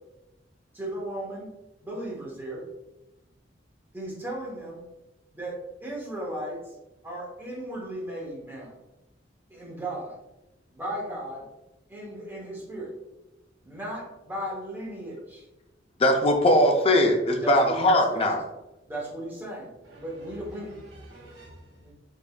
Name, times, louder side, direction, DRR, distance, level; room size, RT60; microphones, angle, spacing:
voice 1, 0.7-1.5 1.8-2.7 3.9-4.8 5.3-6.7 7.0-8.7 9.5-10.2 10.7-11.5 11.9-12.9 13.6-15.4 17.4-18.4 18.9-19.7 20.0-20.7 21.8-21.9, right 1 dB, 10° right, -3 dB, 0.7 m, -36 dB
voice 2, 16.0-18.4, left 1 dB, 30° left, 4 dB, 0.4 m, -20 dB
voice 3, 19.8-21.9, right 1 dB, 60° right, -7 dB, 0.7 m, -48 dB
3.5 x 3.2 x 2.2 m, 0.98 s
head